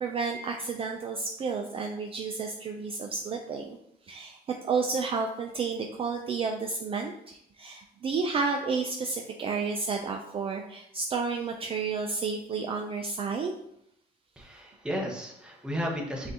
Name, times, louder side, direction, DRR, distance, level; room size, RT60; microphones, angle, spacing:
voice 1, 0.0-3.8 4.1-4.4 4.6-13.5, right 4 dB, 35° right, 3 dB, 0.4 m, -31 dB
voice 2, 14.4-16.3, equal, 5° right, -1 dB, 0.9 m, -33 dB
5.8 x 2.5 x 2.8 m, 0.77 s
cardioid pair, 110°, 17 cm